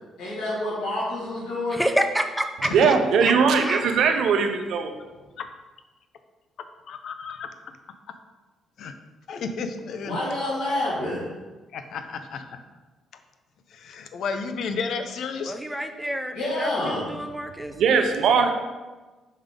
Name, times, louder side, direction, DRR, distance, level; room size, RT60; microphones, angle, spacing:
voice 1, 0.2-1.8 10.0-11.3 16.3-17.1, left 1 dB, 90° left, -9 dB, 2.0 m, -28 dB
voice 2, 1.7-3.0 3.2-3.8 15.4-17.7, equal, 5° right, 6 dB, 0.5 m, -28 dB
voice 3, 2.7-4.9 17.8-18.5, right 5 dB, 75° right, 6 dB, 0.7 m, -20 dB
voice 4, 6.9-7.5 8.8-8.9 9.3-10.2 11.7-12.6 13.7-15.6, left 5 dB, 70° left, 8 dB, 0.6 m, -32 dB
5.4 x 3.6 x 5.1 m, 1.2 s
cardioid pair, 90°, 0 cm